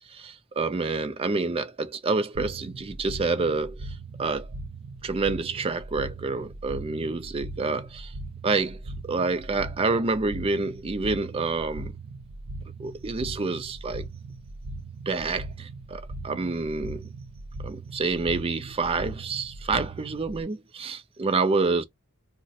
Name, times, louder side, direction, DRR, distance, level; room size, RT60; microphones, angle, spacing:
voice 1, 0.0-4.5 5.0-8.1 8.4-11.9 12.8-14.1 15.1-17.1 17.6-21.8, right 3 dB, 25° right, 0.4 m, -28 dB
sound 1, 2.3-20.4, right 2 dB, 85° right, 0.6 m, -39 dB
2.4 x 2.1 x 3.8 m
head